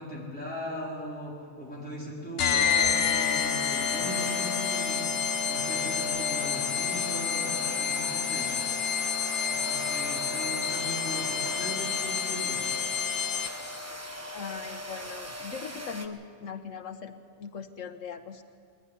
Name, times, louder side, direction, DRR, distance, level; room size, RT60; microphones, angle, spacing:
voice 1, 0.0-5.1 5.5-8.6 9.5-12.6, equal, 5° left, -5 dB, 3.9 m, -39 dB
sound 1, 2.4-13.8, left 7 dB, 55° left, 1.0 m, -29 dB
sound 2, 2.8-16.1, equal, 15° right, 1.1 m, -38 dB
voice 2, 14.3-18.4, left 6 dB, 85° left, 8 dB, 1.5 m, -40 dB
23.0 x 11.5 x 9.9 m, 2.2 s
omnidirectional pair, 1.3 m